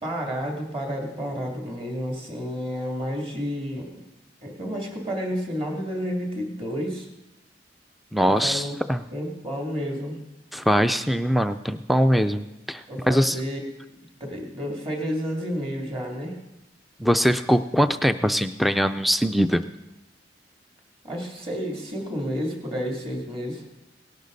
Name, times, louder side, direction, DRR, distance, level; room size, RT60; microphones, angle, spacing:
voice 1, 0.0-4.0 4.4-7.1 8.2-8.7 9.1-10.2 12.9-13.8 14.2-16.4 21.0-23.6, equal, 30° right, 0 dB, 2.7 m, -30 dB
voice 2, 8.1-9.0 10.5-13.4 17.0-19.6, equal, ahead, 10 dB, 0.3 m, -22 dB
18.0 x 11.5 x 4.0 m, 0.97 s
head